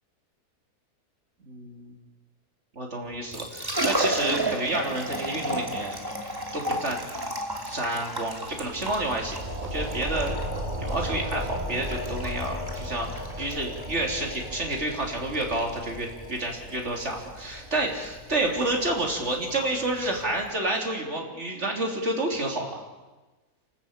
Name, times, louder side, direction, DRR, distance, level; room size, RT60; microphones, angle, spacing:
voice 1, 1.5-1.9 2.7-6.0 6.5-7.0 7.6-10.3 10.8-22.8, right 2 dB, 45° right, 1 dB, 3.8 m, -29 dB
Liquid, 3.1-20.5, right 1 dB, 15° right, 2.7 m, -34 dB
sound 1, 8.4-19.7, equal, 30° right, 2.4 m, -36 dB
29.5 x 13.0 x 8.9 m, 1.2 s
omnidirectional pair, 1.7 m